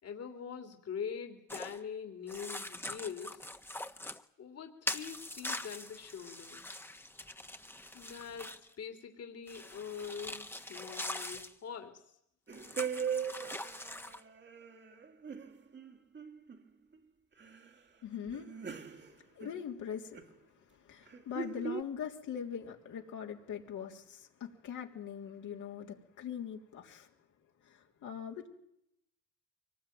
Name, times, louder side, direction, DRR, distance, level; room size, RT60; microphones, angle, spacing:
voice 1, 0.0-3.5 4.4-6.6 7.9-8.5 8.8-12.1, left 7 dB, 55° left, 5 dB, 2.9 m, -43 dB
sound 1, 1.5-1.8 2.3-4.2 4.9-8.7 9.5-11.5 12.5-14.2, left 1 dB, 5° left, 1.3 m, -42 dB
sound 2, 12.5-16.7 16.9-17.0 17.4-17.7 18.1-19.8 20.1-20.4 21.1-21.8, right 7 dB, 35° right, 1.9 m, -40 dB
voice 2, 18.0-27.1 27.6-28.5, left 8 dB, 75° left, 1 dB, 3.3 m, -42 dB
24.0 x 19.0 x 9.3 m, 0.77 s
cardioid pair, 90°, 30 cm